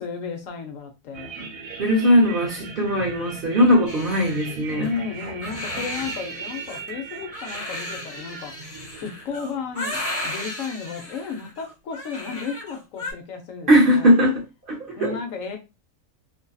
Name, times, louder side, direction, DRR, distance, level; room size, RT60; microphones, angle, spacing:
voice 1, 0.0-1.3 4.8-8.5 8.9-14.1 15.0-15.6, left 5 dB, 70° left, 0.9 m, -33 dB
sound 1, 1.1-10.5, right 5 dB, 70° right, 1.0 m, -39 dB
voice 2, 1.8-4.9 13.7-15.1, equal, 50° right, 0.7 m, -19 dB
Crying sobbing, 3.9-13.1, left 1 dB, 15° left, 0.5 m, -35 dB
2.6 x 2.6 x 2.3 m
omnidirectional pair, 1.5 m